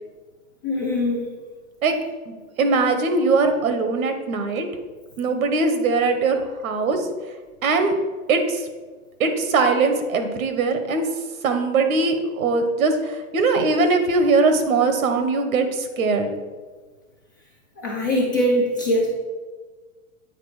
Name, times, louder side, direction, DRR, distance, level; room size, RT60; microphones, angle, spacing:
voice 1, 0.6-1.3 17.8-19.1, equal, 15° left, -2 dB, 0.3 m, -22 dB
voice 2, 2.6-4.7 5.2-7.1 7.6-7.9 8.3-8.7 9.2-11.1 11.4-16.3, right 3 dB, 90° right, 7 dB, 1.3 m, -21 dB
8.7 x 4.5 x 4.9 m, 1.4 s
supercardioid pair, 160°, 41 cm